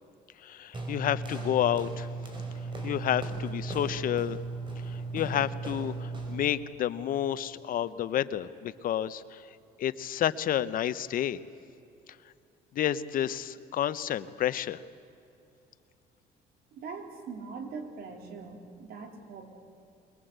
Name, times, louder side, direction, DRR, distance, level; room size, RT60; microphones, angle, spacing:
voice 1, 0.4-2.1 2.8-4.4 4.9-9.4 9.8-11.4 12.7-14.8, left 11 dB, 55° left, 14 dB, 0.9 m, -30 dB
sound 1, 0.7-6.5, right 3 dB, 30° right, 5.0 m, -36 dB
voice 2, 16.7-19.5, right 4 dB, 65° right, 4 dB, 3.5 m, -42 dB
23.0 x 21.0 x 8.1 m, 2.7 s
cardioid pair, 110°, 17 cm